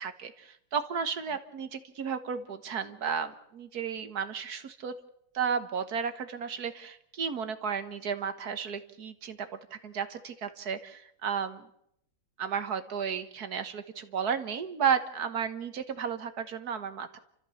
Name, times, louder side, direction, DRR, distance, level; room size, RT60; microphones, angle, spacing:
voice 1, 0.0-4.9 5.3-11.6 12.4-17.2, right 7 dB, 55° right, 10 dB, 1.6 m, -33 dB
30.0 x 14.0 x 7.1 m, 0.75 s
omnidirectional pair, 2.2 m